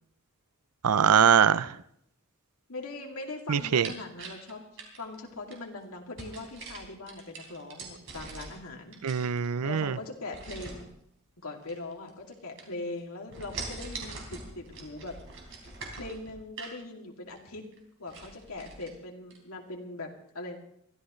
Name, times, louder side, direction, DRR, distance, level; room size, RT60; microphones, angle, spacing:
voice 1, 0.8-1.8 3.5-3.9 9.0-10.0, right 8 dB, 85° right, 0.5 m, -23 dB
voice 2, 2.7-4.6 5.0-8.9 9.6-10.8 11.4-15.2 16.0-17.6 18.0-20.6, left 2 dB, 75° left, 2.7 m, -41 dB
sound 1, 3.6-5.6 6.2-8.7 8.9-9.8 10.3-10.9 11.6-12.3 12.6-13.0 13.3-16.8 17.3-17.4 17.7-17.8 18.1-18.9 19.3-19.4, right 3 dB, 60° right, 3.6 m, -43 dB
23.0 x 14.5 x 3.2 m
head